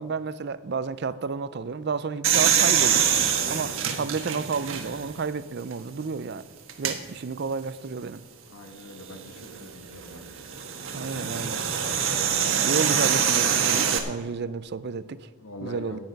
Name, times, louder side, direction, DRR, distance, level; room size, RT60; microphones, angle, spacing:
voice 1, 0.0-3.1 3.5-6.4 6.8-8.2 10.9-11.6 12.6-15.3 15.6-16.0, right 5 dB, 50° right, 15 dB, 0.5 m, -31 dB
sound 1, 2.2-5.2 5.7-5.8 6.7-7.0 9.1-14.0, right 8 dB, 70° right, 1.4 m, -24 dB
voice 2, 8.5-10.2 15.4-16.0, left 1 dB, 85° left, 5 dB, 1.5 m, -43 dB
15.0 x 8.9 x 5.3 m, 1.5 s
head